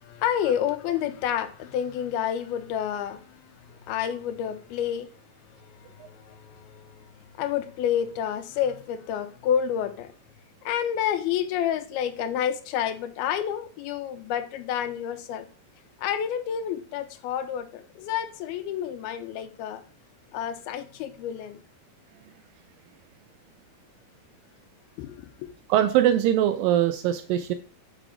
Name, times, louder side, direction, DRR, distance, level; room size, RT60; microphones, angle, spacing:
voice 1, 0.0-5.1 5.5-10.1 10.6-15.5 16.0-19.8 20.3-21.6 25.0-25.5, left 9 dB, 85° left, 2.7 m, -29 dB
voice 2, 25.7-27.5, right 11 dB, 85° right, 2.0 m, -22 dB
7.6 x 4.8 x 5.0 m
omnidirectional pair, 4.4 m